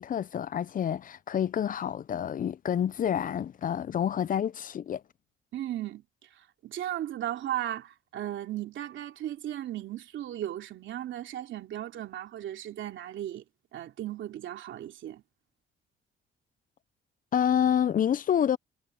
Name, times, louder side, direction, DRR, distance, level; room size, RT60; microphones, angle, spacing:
voice 1, 0.0-5.0 17.3-18.6, left 9 dB, 45° left, 0.5 m, -28 dB
voice 2, 5.5-6.0 6.3-13.4 13.7-15.2, right 12 dB, 75° right, 3.1 m, -36 dB
cardioid pair, 90°, 20 cm